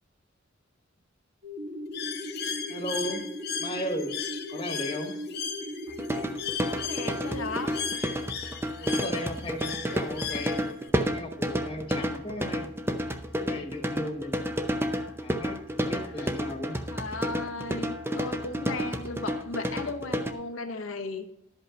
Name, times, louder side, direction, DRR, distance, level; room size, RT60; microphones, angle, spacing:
sound 1, 1.4-8.0, equal, 45° right, 1.3 m, -38 dB
Bird, 1.9-10.9, left 7 dB, 55° left, 1.1 m, -36 dB
voice 1, 2.7-3.2 3.6-4.1 4.5-5.2 8.8-10.7 11.0-12.7 13.4-14.4 15.2-16.8, equal, 25° left, 3 dB, 1.3 m, -36 dB
sound 2, 6.0-20.3, equal, 10° right, 0.6 m, -30 dB
voice 2, 6.6-7.7 16.2-16.3 16.9-21.3, left 3 dB, 85° left, 5 dB, 0.9 m, -36 dB
12.0 x 5.5 x 5.1 m, 0.84 s
head